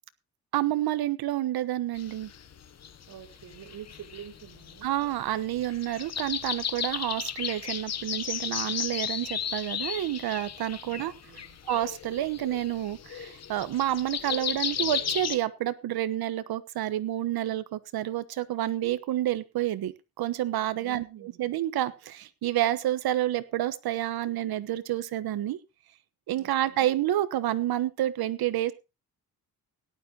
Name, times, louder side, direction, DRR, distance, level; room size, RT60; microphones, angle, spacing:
voice 1, 0.5-2.3 4.8-11.1 11.7-25.6 26.3-28.7, right 13 dB, 85° right, 14 dB, 1.3 m, -29 dB
sound 1, 2.0-15.4, left 8 dB, 45° left, 1.2 m, -35 dB
voice 2, 3.1-4.9 10.8-11.6 20.8-21.6 26.3-26.9, right 9 dB, 65° right, 3 dB, 4.2 m, -47 dB
17.5 x 12.0 x 2.9 m, 0.27 s
cardioid pair, 135°, 36 cm